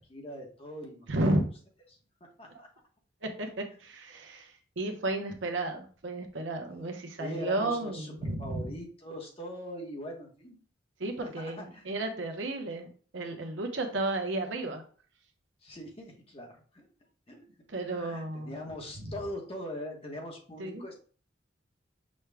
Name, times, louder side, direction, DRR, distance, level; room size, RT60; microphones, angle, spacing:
voice 1, 0.0-1.1 2.2-2.7 7.2-10.6 11.2-11.9 15.6-16.9 17.3-17.4 17.8-20.9, equal, 30° left, 0 dB, 1.0 m, -42 dB
voice 2, 1.1-1.4 3.2-8.6 11.0-12.9 13.1-14.8 17.7-18.5 20.6-20.8, right 2 dB, 75° right, 4 dB, 0.8 m, -33 dB
6.2 x 2.2 x 3.4 m, 0.42 s
head